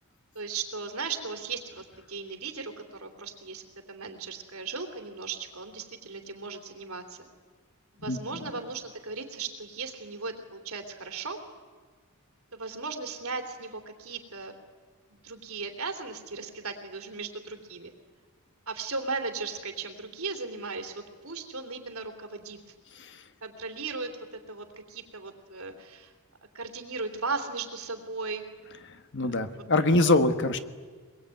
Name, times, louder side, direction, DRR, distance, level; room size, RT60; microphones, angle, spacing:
voice 1, 0.3-7.2 7.9-11.4 12.5-14.5 15.1-17.9 18.7-22.6 23.4-26.1 26.5-28.4 29.5-29.6, right 4 dB, 75° right, 5 dB, 3.3 m, -37 dB
voice 2, 28.9-30.6, left 2 dB, 55° left, 9 dB, 1.5 m, -24 dB
23.5 x 21.5 x 9.2 m, 1.5 s
head